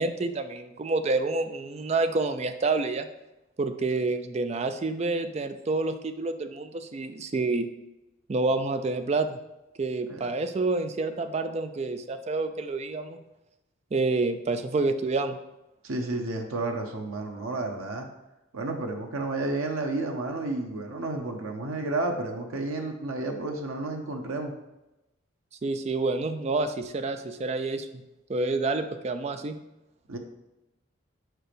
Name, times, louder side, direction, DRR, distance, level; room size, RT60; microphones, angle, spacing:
voice 1, 0.0-3.1 3.6-7.7 8.3-9.4 9.8-13.2 13.9-15.4 25.6-28.0 28.3-29.6, right 3 dB, 30° right, 9 dB, 0.4 m, -28 dB
voice 2, 15.8-18.1 18.5-24.5 30.1-30.2, right 2 dB, 90° right, 3 dB, 0.8 m, -31 dB
5.0 x 4.5 x 5.0 m, 0.96 s
head